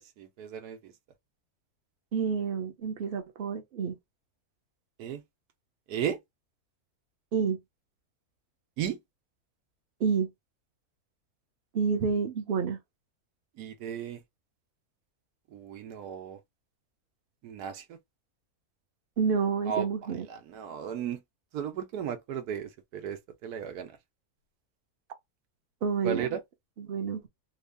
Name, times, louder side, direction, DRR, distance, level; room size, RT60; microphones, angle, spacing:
voice 1, 0.2-0.9 5.0-5.2 5.9-6.2 8.8-9.0 13.6-14.2 15.5-16.4 17.4-18.0 19.7-19.9 20.3-21.2 21.5-24.0 26.0-26.4, right 8 dB, 85° right, 1.3 m, -35 dB
voice 2, 2.1-4.0 7.3-7.6 10.0-10.3 11.7-12.8 19.2-20.3 25.8-26.3 26.8-27.2, right 6 dB, 45° right, 0.8 m, -29 dB
3.1 x 2.6 x 3.4 m
omnidirectional pair, 1.6 m